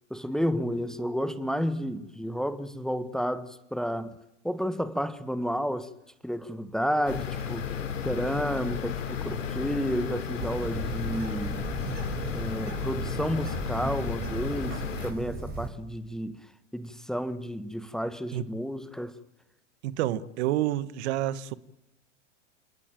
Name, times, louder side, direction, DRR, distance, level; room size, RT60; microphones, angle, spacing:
voice 1, 0.1-4.2 4.4-5.9 6.2-11.6 12.3-19.2, equal, ahead, 1.4 m, -31 dB
sound 1, 7.1-15.1, left 7 dB, 90° left, 3.7 m, -34 dB
Bird, 10.4-15.7, right 4 dB, 25° right, 7.3 m, -36 dB
voice 2, 19.8-21.5, right 13 dB, 60° right, 1.3 m, -28 dB
28.5 x 18.5 x 9.1 m
hypercardioid pair, 110°, 37 cm